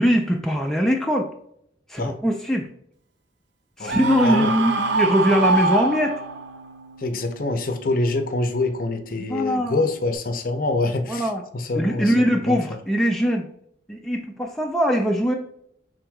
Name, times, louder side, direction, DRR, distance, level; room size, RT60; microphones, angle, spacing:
voice 1, 0.0-1.3 1.9-2.7 3.8-6.2 9.2-9.8 11.1-11.4 11.7-13.5 13.9-15.3, equal, ahead, 0 dB, 0.4 m, -21 dB
Screaming, 3.9-6.6, right 3 dB, 75° right, 0.6 m, -23 dB
Bass guitar, 3.9-10.2, right 1 dB, 90° right, 1.7 m, -42 dB
voice 2, 4.2-4.5 7.0-12.1 12.5-12.6, left 2 dB, 45° left, 7 dB, 0.6 m, -25 dB
6.1 x 3.9 x 2.2 m, 0.72 s
head